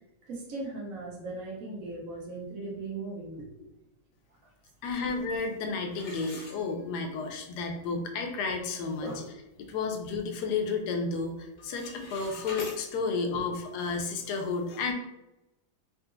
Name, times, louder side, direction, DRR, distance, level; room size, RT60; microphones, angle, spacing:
voice 1, 0.3-3.5 9.0-9.2 13.3-13.4, right 2 dB, 60° right, -3 dB, 1.1 m, -38 dB
voice 2, 4.8-9.1 9.6-14.9, left 4 dB, 80° left, 4 dB, 1.1 m, -32 dB
sound 1, 5.9-7.2 7.6-7.7 8.3-8.4 8.8-9.1 9.5-10.6 10.9-11.3 11.5-12.8, left 3 dB, 55° left, 0.8 m, -45 dB
3.8 x 2.5 x 2.5 m, 0.94 s
omnidirectional pair, 1.7 m